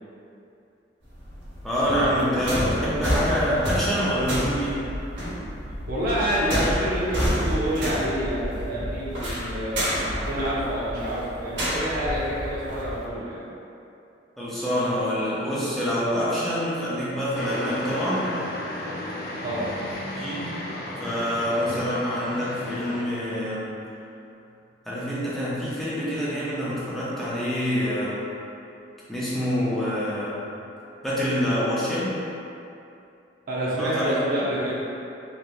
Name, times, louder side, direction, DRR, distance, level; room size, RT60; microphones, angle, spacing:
sound 1, 1.1-13.1, equal, 90° right, 1.0 m, -29 dB
voice 1, 1.6-4.9 14.4-18.3 20.1-20.5 20.9-23.7 24.8-28.2 29.1-30.4 31.0-32.2 33.8-34.2, equal, ahead, -10 dB, 0.6 m, -26 dB
voice 2, 5.9-13.4 19.4-19.7 33.5-34.8, equal, 55° right, -8 dB, 0.6 m, -28 dB
sound 2, 17.3-23.0, left 1 dB, 55° left, 0.4 m, -34 dB
3.3 x 2.7 x 2.5 m, 2.7 s
head